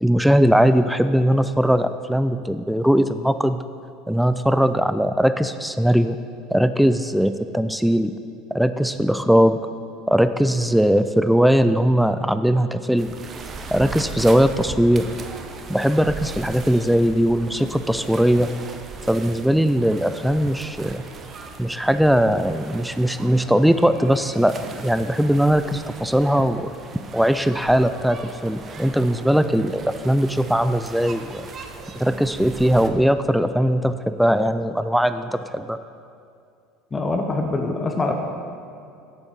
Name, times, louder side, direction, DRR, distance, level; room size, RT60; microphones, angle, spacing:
voice 1, 0.0-3.6 4.1-6.2 6.5-8.1 8.5-9.6 10.1-13.1 13.7-15.1 15.7-18.5 19.1-21.0 21.6-24.6 24.8-26.8 27.1-31.5 32.0-35.8, equal, ahead, 11 dB, 0.3 m, -19 dB
sound 1, 13.0-32.9, right 4 dB, 35° right, 0.7 m, -38 dB
voice 2, 36.9-38.1, left 2 dB, 20° left, 3 dB, 0.9 m, -24 dB
8.0 x 7.1 x 5.3 m, 2.5 s
figure-of-eight pair, 70°, 0 cm